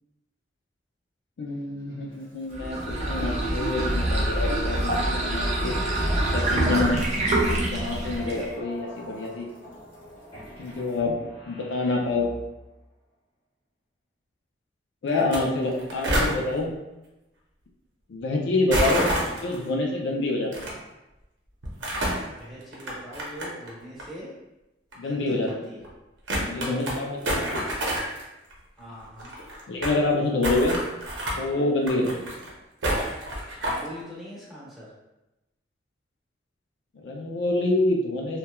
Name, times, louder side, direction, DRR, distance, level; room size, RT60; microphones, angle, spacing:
voice 1, 1.4-5.7 6.3-7.0 7.7-9.5 10.6-11.1 11.5-12.3 15.0-16.7 18.1-20.7 25.0-25.5 26.5-27.7 29.7-30.8 31.4-32.3 37.0-38.4, left 2 dB, 75° left, 0 dB, 0.4 m, -27 dB
sound 1, 1.5-12.7, equal, 25° left, 1.0 m, -45 dB
sound 2, 2.5-8.5, right 1 dB, 40° right, 0.5 m, -25 dB
sound 3, 15.2-15.4 15.6-16.3 18.7-19.5 20.5-20.7 21.6-22.2 22.7-23.7 24.0-24.1 24.9-25.0 25.5-25.6 25.8-25.9 26.3-26.9 27.2-28.2 28.5-28.6 28.8-28.9 29.0-30.0 30.4-31.4 31.8-32.5 32.8-33.9, right 1 dB, 85° right, 0.7 m, -27 dB
voice 2, 22.3-24.3 25.0-25.8 28.8-29.3 33.6-34.9, equal, ahead, -9 dB, 0.9 m, -41 dB
2.9 x 2.2 x 2.2 m, 0.97 s
head